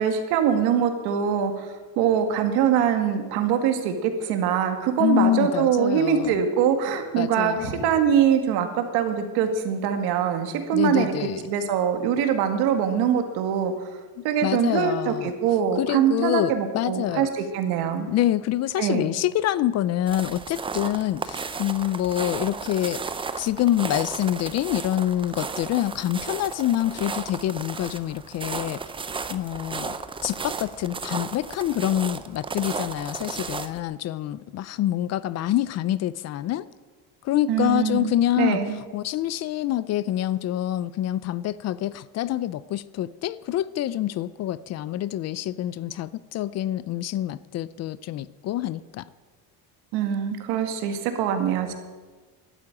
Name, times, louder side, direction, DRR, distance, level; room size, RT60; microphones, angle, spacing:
voice 1, 0.0-11.1 11.5-14.0 14.2-18.1 18.8-19.1 37.5-38.8 49.9-51.7, right 8 dB, 80° right, 2.1 m, -23 dB
voice 2, 5.0-6.5 7.2-7.7 10.7-11.4 14.2-15.3 15.8-17.3 18.1-23.0 23.4-28.8 29.3-30.0 30.2-36.7 37.2-38.6 38.9-49.1, left 13 dB, 45° left, 0.5 m, -26 dB
sound 1, 20.1-33.8, right 5 dB, 15° right, 0.5 m, -34 dB
12.5 x 8.6 x 9.7 m
cardioid pair, 150°, 38 cm